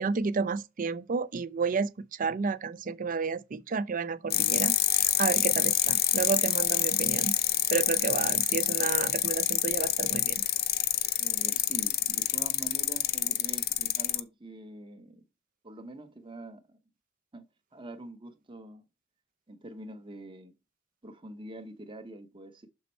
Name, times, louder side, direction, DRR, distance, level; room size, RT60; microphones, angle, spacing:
voice 1, 0.0-7.3 7.7-10.4, right 5 dB, 45° right, 0.5 m, -31 dB
sound 1, 4.3-14.2, left 13 dB, 50° left, 0.5 m, -27 dB
voice 2, 11.2-15.2 15.6-16.8 17.3-17.4 17.7-18.8 19.5-20.5 21.0-22.7, right 1 dB, 25° right, 0.9 m, -45 dB
6.6 x 4.1 x 4.3 m
head